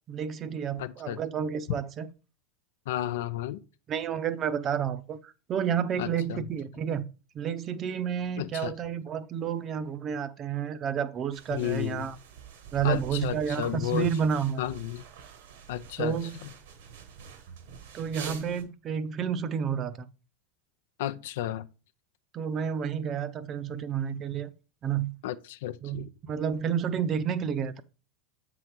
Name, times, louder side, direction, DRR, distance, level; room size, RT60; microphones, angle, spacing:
voice 1, 0.1-2.1 3.9-7.0 7.3-12.2 12.7-14.6 16.0-16.3 17.9-20.1 22.3-24.5 24.8-25.1 25.8-27.8, right 8 dB, 40° right, 0.7 m, -30 dB
voice 2, 0.8-1.2 2.9-3.6 6.0-6.4 8.4-8.7 11.5-12.1 12.8-14.1 14.6-15.0 15.7-16.2 16.4-16.5 21.0-21.7 25.2-26.1, left 12 dB, 70° left, 0.5 m, -32 dB
sound 1, 11.3-18.6, right 7 dB, 70° right, 1.3 m, -46 dB
7.6 x 3.9 x 4.6 m
hypercardioid pair, 85°, 0 cm